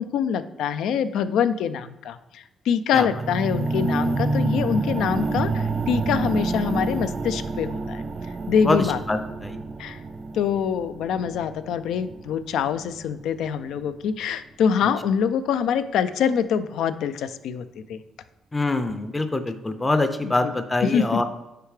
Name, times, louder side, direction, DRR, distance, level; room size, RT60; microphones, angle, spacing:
voice 1, 0.0-8.0 8.5-9.0 9.8-10.0 10.3-18.0 20.2-20.5 20.8-21.2, left 7 dB, 80° left, 12 dB, 0.3 m, -25 dB
sound 1, 3.0-13.1 13.8-13.9, right 3 dB, 40° right, 0.4 m, -28 dB
voice 2, 8.6-9.6 18.5-21.2, left 2 dB, 20° left, 9 dB, 0.5 m, -24 dB
6.7 x 4.6 x 3.2 m, 0.97 s
cardioid pair, 90°, 0 cm